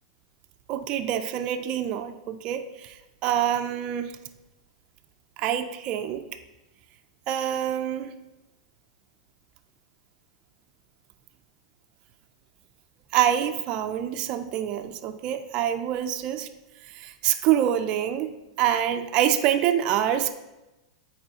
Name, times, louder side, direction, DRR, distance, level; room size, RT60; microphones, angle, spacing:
voice 1, 0.7-4.1 5.4-6.3 7.3-8.1 13.1-16.5 16.8-20.3, right 10 dB, 25° right, 7 dB, 0.3 m, -26 dB
9.3 x 4.7 x 2.8 m, 1.0 s
supercardioid pair, 175°, 4 cm